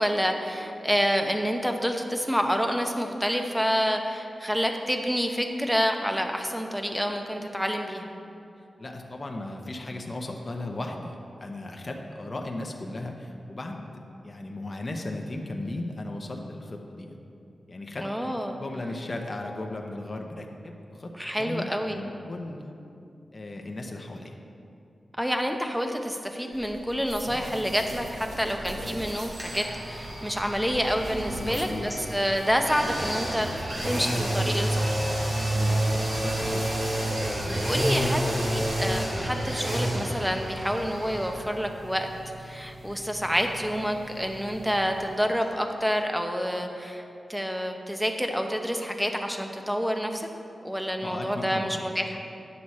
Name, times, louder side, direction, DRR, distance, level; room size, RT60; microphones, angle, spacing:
voice 1, 0.0-8.1 18.0-18.6 21.2-22.0 25.2-35.0 37.5-42.1 42.4-47.0 47.3-50.3 50.6-52.2, equal, 5° right, 4 dB, 0.7 m, -28 dB
voice 2, 8.8-13.9 14.2-17.1 17.7-18.3 18.6-21.1 21.4-22.7 23.3-24.3 31.3-31.9 35.3-35.8 36.1-36.7 51.0-51.8, left 2 dB, 35° left, 1 dB, 0.7 m, -36 dB
sound 1, 26.5-39.3, right 1 dB, 80° right, 1.5 m, -42 dB
sound 2, 29.3-45.1 45.4-45.5, right 1 dB, 55° right, 2.1 m, -30 dB
9.6 x 6.3 x 4.2 m, 2.6 s
wide cardioid pair, 95°, 0 cm